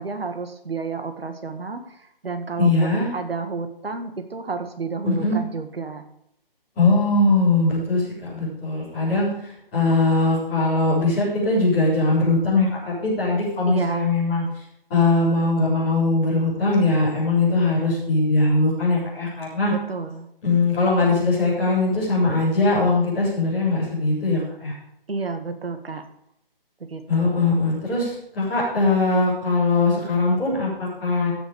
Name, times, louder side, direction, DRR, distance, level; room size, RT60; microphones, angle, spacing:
voice 1, 0.0-6.0 13.7-14.1 19.7-20.3 25.1-26.0 26.8-27.5, right 4 dB, 85° right, 7 dB, 1.8 m, -31 dB
voice 2, 2.6-3.1 5.0-5.4 6.8-14.4 14.9-19.7 20.4-24.7 27.1-31.3, left 3 dB, 10° left, -11 dB, 4.2 m, -21 dB
14.5 x 6.4 x 5.1 m, 0.74 s
hypercardioid pair, 180°, 29 cm